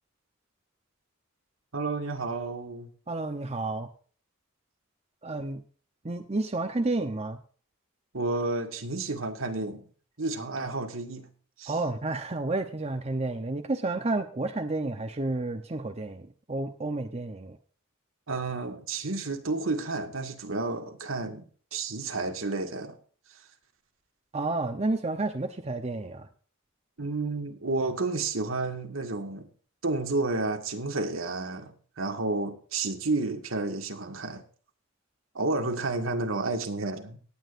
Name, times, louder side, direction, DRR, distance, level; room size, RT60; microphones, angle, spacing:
voice 1, 1.7-2.9 8.1-9.8 10.2-11.3 11.6-11.7 18.3-21.4 21.7-23.0 27.0-29.5 29.8-34.4 35.4-37.2, right 3 dB, 75° right, 1.9 m, -31 dB
voice 2, 3.1-3.9 5.2-5.6 6.0-7.4 11.7-17.6 24.3-26.3, right 2 dB, 30° right, 0.8 m, -31 dB
18.5 x 8.8 x 2.6 m
head